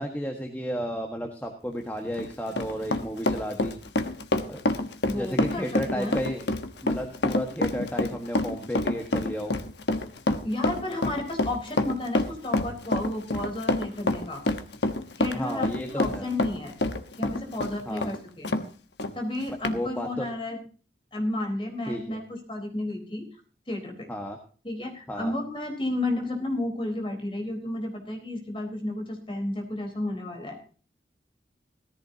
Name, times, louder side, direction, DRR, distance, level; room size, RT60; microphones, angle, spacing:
voice 1, 0.0-3.7 4.5-4.6 5.1-6.5 6.8-9.5 15.3-16.3 17.9-18.1 19.7-20.3 21.9-22.2 24.1-24.4 25.1-25.3, equal, 10° left, 2 dB, 1.4 m, -32 dB
Run, 2.0-18.7 19.0-19.1 19.6-19.8, left 2 dB, 70° left, 1.2 m, -27 dB
voice 2, 5.1-6.2 10.4-14.4 15.2-16.7 17.2-18.5 19.1-20.6 21.1-23.3 23.7-24.1 24.6-30.6, left 1 dB, 30° left, 2 dB, 3.9 m, -32 dB
16.5 x 14.5 x 2.8 m, 0.39 s
head